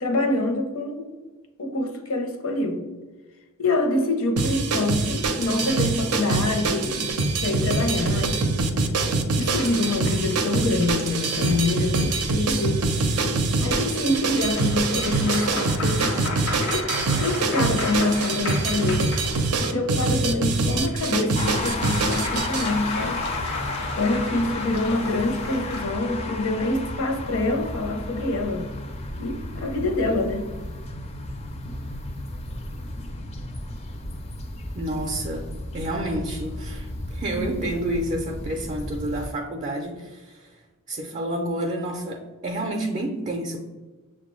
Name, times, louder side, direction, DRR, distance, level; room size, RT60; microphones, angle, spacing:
voice 1, 0.0-1.1 1.6-2.9 3.6-7.1 7.4-8.6 9.4-12.8 13.6-16.1 16.7-19.2 19.6-23.2 23.9-28.7 29.2-30.4, left 2 dB, 65° left, 4 dB, 0.6 m, -26 dB
sound 1, 4.4-22.7, right 3 dB, 90° right, 0.5 m, -24 dB
sound 2, 9.6-12.0 13.8-19.8 20.7-26.1, left 2 dB, 90° left, 0.9 m, -35 dB
sound 3, 21.3-39.3, left 2 dB, 30° left, 0.4 m, -33 dB
voice 2, 34.7-35.4 35.7-40.6 40.9-43.6, right 1 dB, 35° right, 1 dB, 0.4 m, -29 dB
6.5 x 2.2 x 3.0 m, 1.3 s
head